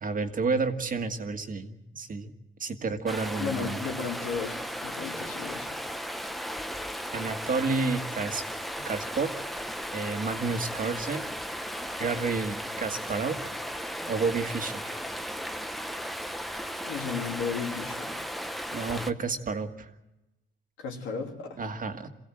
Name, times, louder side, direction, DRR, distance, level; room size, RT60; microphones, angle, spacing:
voice 1, 0.0-2.3 2.6-3.8 7.1-8.4 8.9-9.5 9.9-11.3 12.0-13.4 14.1-15.0 18.7-19.9 21.6-22.1, right 4 dB, 45° right, 6 dB, 1.7 m, -30 dB
Stream, 3.1-19.1, equal, ahead, 0.9 m, -36 dB
voice 2, 3.4-5.8 16.8-18.2 20.8-21.6, left 6 dB, 80° left, 1 dB, 3.2 m, -34 dB
23.5 x 16.0 x 7.7 m, 0.98 s
cardioid pair, 90°, 20 cm